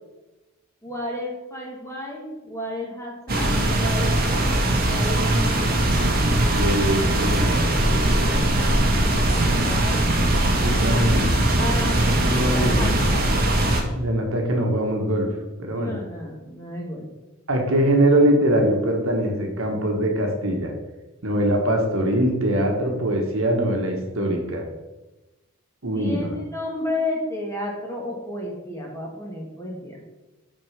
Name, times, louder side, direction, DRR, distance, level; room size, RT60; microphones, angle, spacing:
voice 1, 0.8-5.7 9.1-10.0 11.6-13.3 15.7-17.1 25.9-30.0, left 1 dB, 10° left, -2 dB, 1.6 m, -32 dB
sound 1, 3.3-13.8, right 1 dB, 45° right, 1.1 m, -20 dB
voice 2, 6.5-8.3 9.4-9.8 10.5-11.2 12.1-13.0 13.9-15.3 15.6-15.9 17.5-20.7 21.2-24.6 25.8-26.3, right 1 dB, 65° right, 2 dB, 1.2 m, -23 dB
6.1 x 4.4 x 5.8 m, 1.1 s
head